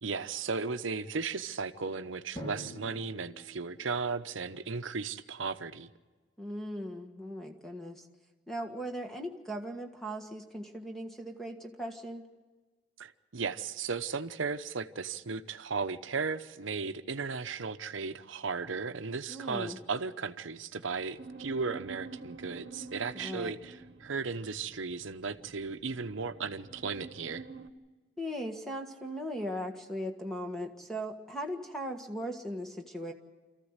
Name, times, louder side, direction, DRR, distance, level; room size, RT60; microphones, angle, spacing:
voice 1, 0.0-5.9 13.0-27.4, right 4 dB, 85° right, 10 dB, 0.9 m, -36 dB
Drum, 2.4-4.9, equal, 25° left, 2.6 m, -46 dB
voice 2, 6.4-8.1 8.5-12.2 19.3-19.8 23.1-23.5 28.2-33.1, equal, ahead, 3 dB, 1.5 m, -38 dB
sound 1, 21.2-27.7, right 3 dB, 65° right, 1.2 m, -48 dB
26.5 x 14.5 x 8.1 m, 1.3 s
head